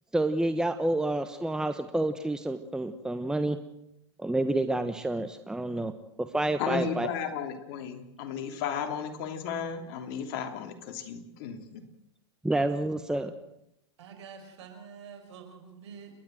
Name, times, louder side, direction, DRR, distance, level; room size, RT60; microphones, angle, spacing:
voice 1, 0.1-3.6 4.2-5.9 6.2-7.1 12.4-13.3, right 2 dB, 5° right, 9 dB, 1.2 m, -29 dB
voice 2, 6.6-11.8, left 7 dB, 55° left, 6 dB, 3.1 m, -34 dB
voice 3, 14.0-16.1, right 6 dB, 70° right, 6 dB, 5.7 m, -47 dB
30.0 x 12.0 x 7.9 m, 0.84 s
hypercardioid pair, 110°, 15 cm